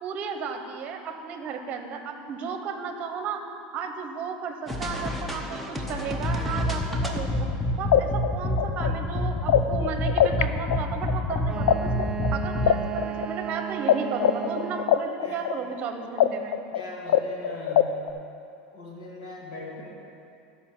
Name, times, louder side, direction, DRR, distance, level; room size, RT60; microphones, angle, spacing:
voice 1, 0.0-3.4 3.7-7.5 7.8-11.9 12.3-16.6, right 6 dB, 35° right, 5 dB, 1.0 m, -34 dB
sound 1, 4.7-12.7, left 1 dB, ahead, 0.8 m, -28 dB
sound 2, 7.5-7.6 7.9-10.4 10.7-13.9 14.2-18.1, left 11 dB, 90° left, 0.4 m, -22 dB
Wind instrument woodwind instrument, 11.4-15.2, right 8 dB, 20° right, 0.4 m, -34 dB
voice 2, 16.7-18.1 18.7-19.9, left 2 dB, 65° left, -3 dB, 2.7 m, -40 dB
12.5 x 5.3 x 7.3 m, 2.7 s
supercardioid pair, 150°, 4 cm